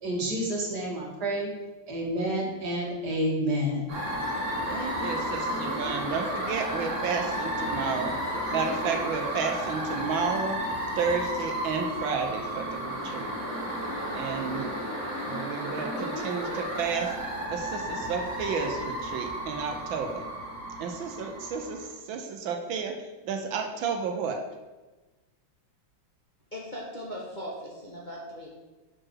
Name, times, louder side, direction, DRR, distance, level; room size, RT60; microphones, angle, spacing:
voice 1, 0.0-1.5 1.9-3.8, right 1 dB, 55° right, -2 dB, 2.2 m, -29 dB
sound 1, 3.9-21.9, equal, 40° right, 2.6 m, -33 dB
voice 2, 4.7-8.1 8.5-10.6 11.0-13.3 14.1-14.7 15.3-17.1 17.5-20.2 20.8-23.0 23.2-24.4, right 5 dB, 75° right, 4 dB, 1.5 m, -31 dB
voice 3, 26.5-28.5, equal, 30° left, -4 dB, 1.1 m, -39 dB
6.2 x 4.6 x 6.2 m, 1.2 s
omnidirectional pair, 2.2 m